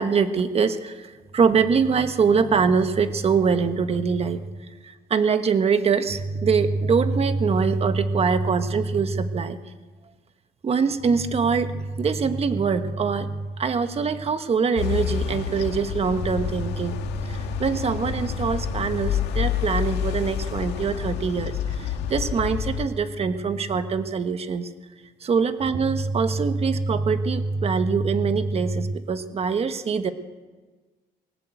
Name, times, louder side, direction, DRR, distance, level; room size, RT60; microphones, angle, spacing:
voice 1, 0.0-9.6 10.6-24.7 25.2-30.1, right 5 dB, 35° right, 9 dB, 1.4 m, -23 dB
sound 1, 14.8-22.9, left 9 dB, 85° left, 1.8 m, -28 dB
21.0 x 18.5 x 7.9 m, 1.4 s
cardioid pair, 110°, 17 cm